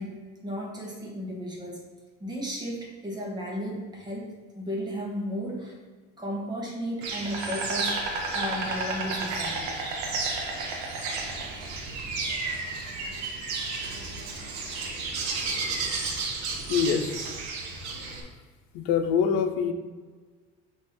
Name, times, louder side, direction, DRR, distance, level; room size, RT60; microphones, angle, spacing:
voice 1, 0.0-1.8 2.2-5.8 6.2-9.7, equal, 15° right, -3 dB, 1.3 m, -34 dB
Insect, 7.0-18.2, right 3 dB, 65° right, 1.1 m, -32 dB
voice 2, 16.7-17.2 18.7-19.7, left 7 dB, 85° left, 6 dB, 0.8 m, -24 dB
8.3 x 3.1 x 3.8 m, 1.4 s
cardioid pair, 160°, 30 cm